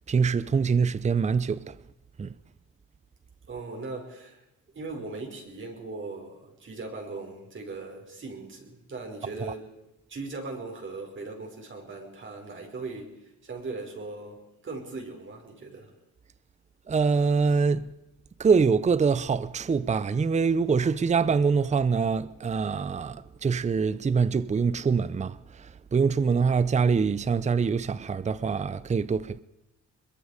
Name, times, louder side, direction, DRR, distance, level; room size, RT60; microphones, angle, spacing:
voice 1, 0.1-1.8 2.2-2.3 16.9-17.9 18.4-29.4, right 5 dB, 25° right, 0.7 m, -24 dB
voice 2, 3.5-4.4 4.7-9.7 10.1-15.9, right 3 dB, 40° right, 5.3 m, -39 dB
23.0 x 22.0 x 5.1 m
cardioid pair, 90°, 30 cm